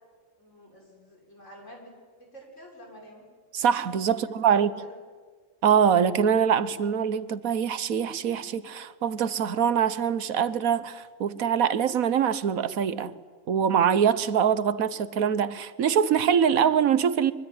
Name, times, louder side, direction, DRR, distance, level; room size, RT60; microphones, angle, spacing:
voice 1, 0.4-1.9 2.2-3.3 4.2-5.0, equal, 60° left, 7.1 m, -49 dB
voice 2, 3.5-4.7 5.6-13.1 13.5-17.3, right 8 dB, 85° right, 1.5 m, -24 dB
24.0 x 24.0 x 9.9 m
omnidirectional pair, 1.4 m